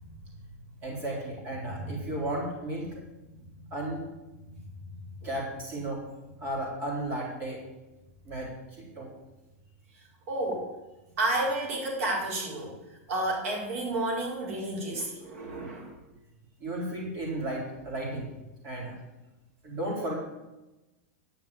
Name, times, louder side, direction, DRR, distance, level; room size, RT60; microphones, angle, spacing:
voice 1, 0.8-3.0 3.7-4.0 5.2-6.0 6.4-7.6 8.3-9.1 16.6-18.3 18.6-19.0 19.6-20.2, right 1 dB, 25° right, -3 dB, 3.8 m, -34 dB
voice 2, 10.3-10.6 11.2-15.9, right 2 dB, 65° right, -1 dB, 4.6 m, -31 dB
10.0 x 5.8 x 8.7 m, 1.0 s
supercardioid pair, 170°, 8 cm